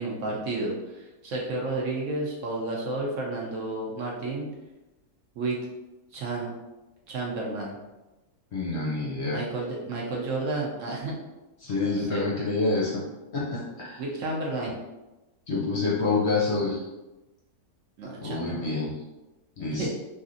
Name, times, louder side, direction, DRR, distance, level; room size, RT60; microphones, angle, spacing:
voice 1, 0.0-4.5 5.4-5.6 6.1-6.5 7.1-7.8 9.3-11.1 11.8-12.3 14.0-14.8 16.1-16.2 18.0-18.8 19.8-19.9, right 2 dB, 65° right, -3 dB, 0.9 m, -31 dB
voice 2, 8.5-9.4 11.6-12.9 13.3-14.0 15.5-16.8 18.2-18.9 19.6-19.9, left 3 dB, 60° left, -5 dB, 0.8 m, -27 dB
3.1 x 2.6 x 2.5 m, 1.0 s
omnidirectional pair, 1.6 m